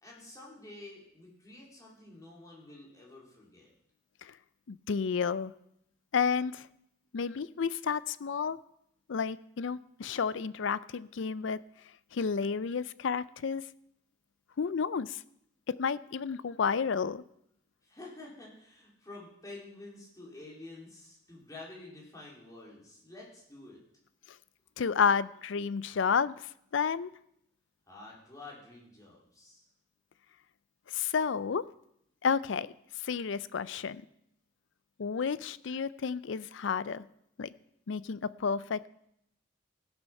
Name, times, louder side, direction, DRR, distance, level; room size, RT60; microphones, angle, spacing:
voice 1, 0.0-3.7 17.8-23.8 27.9-29.6, left 2 dB, 15° left, -4 dB, 3.3 m, -49 dB
voice 2, 4.7-5.5 6.1-6.7 7.1-8.6 9.1-11.6 12.1-13.6 14.6-15.2 15.8-17.2 24.8-26.3 26.7-27.1 30.9-31.6 32.2-32.7 33.0-34.0 35.0-37.0 37.4-37.5 37.9-38.9, left 6 dB, 65° left, 17 dB, 0.4 m, -31 dB
16.0 x 7.0 x 5.8 m, 0.76 s
head